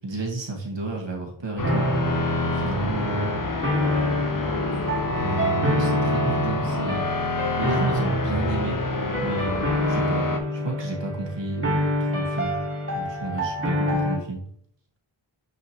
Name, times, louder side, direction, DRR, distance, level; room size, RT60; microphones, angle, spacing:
voice 1, 0.0-1.9 2.5-3.4 5.1-7.1 7.6-8.8 9.1-12.6 12.9-14.4, right 2 dB, 60° right, 0 dB, 1.7 m, -31 dB
sound 1, 1.6-10.4, left 3 dB, 40° left, 1.1 m, -28 dB
sound 2, 1.6-14.2, equal, 25° right, 1.8 m, -27 dB
6.9 x 5.1 x 3.0 m, 0.62 s
wide cardioid pair, 45°, 49 cm